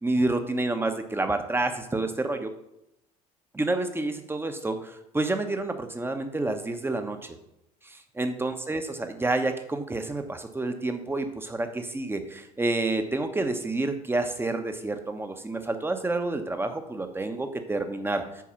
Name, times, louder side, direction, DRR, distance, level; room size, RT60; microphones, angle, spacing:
voice 1, 0.0-2.5 3.5-7.3 7.8-18.4, right 2 dB, 10° right, 7 dB, 1.1 m, -29 dB
8.6 x 4.8 x 5.7 m, 0.82 s
figure-of-eight pair, 65°, 20 cm